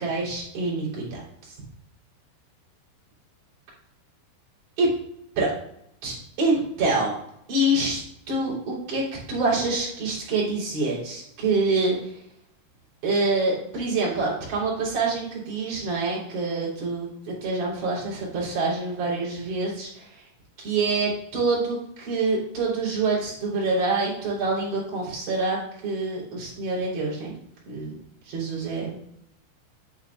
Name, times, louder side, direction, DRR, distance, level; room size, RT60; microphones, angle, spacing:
voice 1, 0.0-1.5 4.8-4.9 5.4-5.5 6.0-7.1 7.5-8.0 8.3-12.1 13.0-20.2 20.6-27.3 27.7-28.0 28.3-29.0, right 2 dB, 45° right, -7 dB, 4.7 m, -26 dB
9.3 x 8.4 x 2.4 m, 0.77 s
omnidirectional pair, 5.3 m